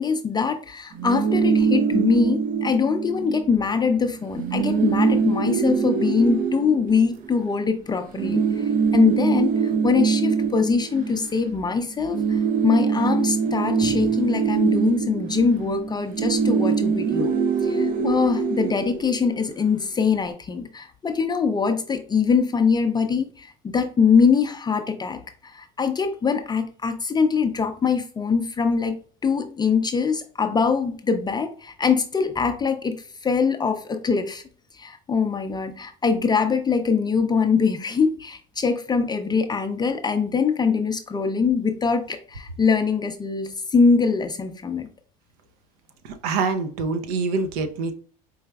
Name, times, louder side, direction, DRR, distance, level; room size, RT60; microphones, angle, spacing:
voice 1, 0.0-17.3 17.6-29.0 29.2-34.4 34.7-44.9, left 5 dB, 20° left, 6 dB, 0.5 m, -23 dB
sound 1, 0.9-3.5 3.8-3.9 4.2-7.6 8.1-11.7 12.0-19.6, right 6 dB, 45° right, 0.5 m, -23 dB
voice 2, 46.0-47.9, right 4 dB, 80° right, 8 dB, 0.7 m, -25 dB
4.8 x 3.2 x 2.2 m, 0.43 s
supercardioid pair, 100°, 20 cm